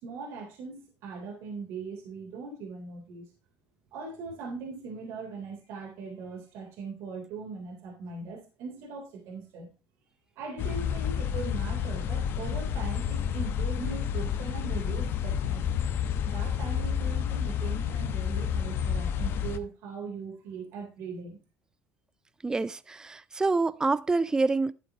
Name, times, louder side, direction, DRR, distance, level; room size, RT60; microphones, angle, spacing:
voice 1, 0.0-3.3 3.9-9.7 10.3-15.6 16.3-21.4, right 4 dB, 65° right, 3.4 m, -40 dB
sound 1, 10.6-19.6, left 8 dB, 55° left, 1.1 m, -30 dB
voice 2, 22.4-24.7, right 3 dB, 15° right, 0.5 m, -27 dB
11.5 x 7.7 x 3.0 m
supercardioid pair, 85°, 5 cm